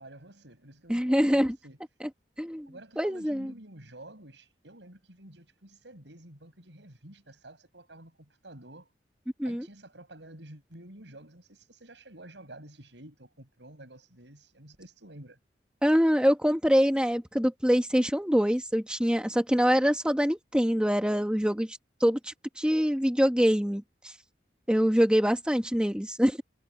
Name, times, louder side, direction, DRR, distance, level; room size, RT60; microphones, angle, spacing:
voice 1, 0.0-1.8 2.7-8.9 9.4-15.4, right 1 dB, 75° right, 6.2 m, -50 dB
voice 2, 0.9-1.5 2.4-2.7 3.0-3.5 9.4-9.7 15.8-24.1 24.7-26.4, equal, 5° right, 1.5 m, -25 dB
head